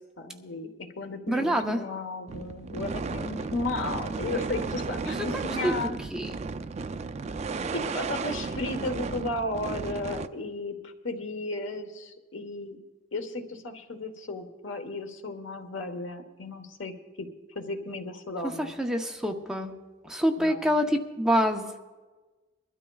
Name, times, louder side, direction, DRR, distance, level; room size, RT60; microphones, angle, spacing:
voice 1, 0.2-6.0 7.7-12.8 13.1-17.3 17.5-18.7 20.4-20.7, left 2 dB, 90° left, 6 dB, 1.2 m, -34 dB
voice 2, 1.3-1.8 5.1-5.8 6.1-6.3 18.4-19.7 20.0-21.7, equal, 5° right, 2 dB, 0.8 m, -27 dB
sound 1, 2.3-10.3, right 4 dB, 35° right, 0.4 m, -34 dB
23.5 x 12.5 x 2.3 m, 1.2 s
head